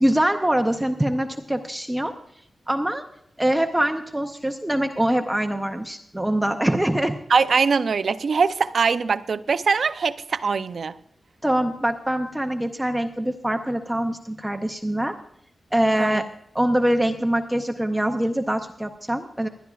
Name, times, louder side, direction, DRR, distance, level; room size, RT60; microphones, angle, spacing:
voice 1, 0.0-2.1 2.7-3.0 3.4-7.2 11.4-15.2 15.7-16.2 16.5-19.5, right 1 dB, 5° right, 0.6 m, -23 dB
voice 2, 7.3-11.0 16.0-16.2, right 5 dB, 55° right, 0.5 m, -22 dB
20.5 x 12.0 x 2.3 m
wide cardioid pair, 170°, 0 cm